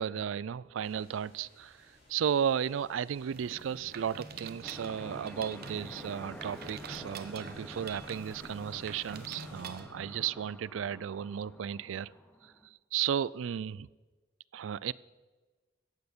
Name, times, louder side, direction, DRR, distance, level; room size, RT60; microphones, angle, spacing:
voice 1, 0.0-1.8 2.1-12.1 12.4-12.5 12.9-13.9 14.5-14.9, right 8 dB, 85° right, 0.4 m, -34 dB
sound 1, 0.8-9.8, left 1 dB, 30° left, 4.7 m, -61 dB
Mechanisms, 3.3-10.3, right 4 dB, 55° right, 1.0 m, -47 dB
sound 2, 4.6-12.7, left 1 dB, 5° left, 0.9 m, -49 dB
14.5 x 9.2 x 6.8 m
head